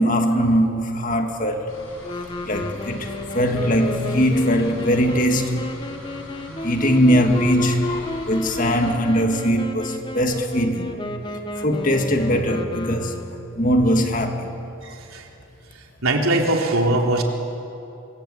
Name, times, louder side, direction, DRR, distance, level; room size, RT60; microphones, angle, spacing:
voice 1, 0.0-1.7 2.4-5.7 6.6-11.0 11.6-13.2 13.6-14.6, equal, 40° left, 2.0 m, -21 dB
sound 1, 1.7-8.9, left 1 dB, 75° left, 6.7 m, -41 dB
Wind instrument woodwind instrument, 2.0-13.7, left 1 dB, 20° left, 1.1 m, -32 dB
voice 2, 14.8-15.3 16.0-17.2, right 2 dB, 80° right, 3.5 m, -21 dB
25.5 x 24.0 x 8.5 m
head